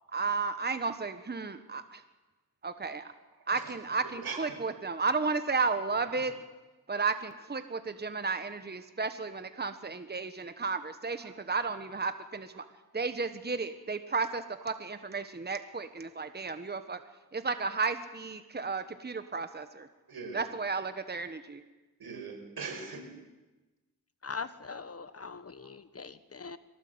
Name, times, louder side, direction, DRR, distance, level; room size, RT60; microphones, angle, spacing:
voice 1, 0.1-2.0 2.6-3.1 3.5-6.3 6.9-12.6 12.9-17.0 17.3-19.9 20.3-21.6, right 4 dB, 25° right, 9 dB, 1.3 m, -33 dB
voice 2, 3.5-4.6 6.1-6.3 11.2-11.3 20.1-20.4 21.6-21.7 22.0-23.1 24.7-24.8, right 5 dB, 90° right, 3 dB, 5.2 m, -42 dB
voice 3, 24.2-26.6, left 5 dB, 40° left, 13 dB, 1.2 m, -41 dB
23.0 x 17.5 x 8.0 m, 1.1 s
wide cardioid pair, 75°, 36 cm